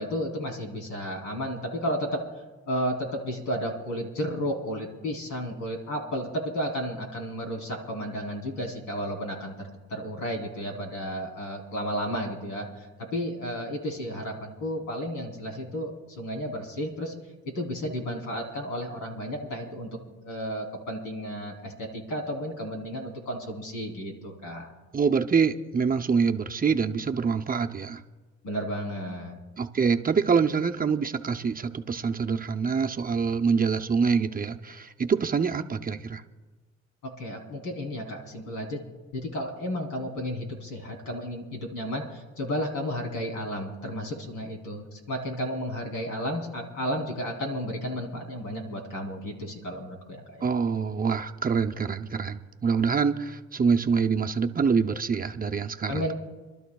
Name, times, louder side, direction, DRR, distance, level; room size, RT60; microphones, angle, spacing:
voice 1, 0.0-2.2 2.7-17.1 17.6-19.9 20.2-24.7 28.4-29.4 37.0-50.4 55.9-56.1, equal, 85° left, 1 dB, 3.4 m, -33 dB
voice 2, 24.9-28.0 29.6-36.2 50.4-56.1, right 5 dB, 30° right, 5 dB, 0.7 m, -25 dB
29.5 x 12.0 x 2.3 m, 1.3 s
cardioid pair, 90°, 30 cm